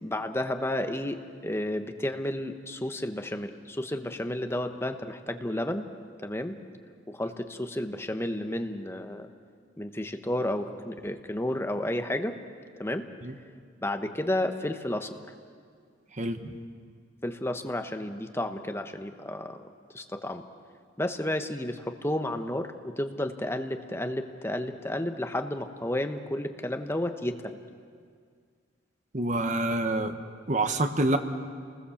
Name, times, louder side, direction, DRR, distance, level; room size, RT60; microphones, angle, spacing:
voice 1, 0.0-5.9 6.2-6.6 7.1-9.3 9.8-12.3 12.8-13.1 13.8-15.2 17.2-19.6 19.9-20.4 21.0-27.6, left 1 dB, 15° left, 6 dB, 1.1 m, -32 dB
voice 2, 16.2-16.6 29.1-30.1 30.5-31.2, right 2 dB, 40° right, 7 dB, 1.4 m, -27 dB
29.0 x 20.5 x 7.2 m, 2.1 s
head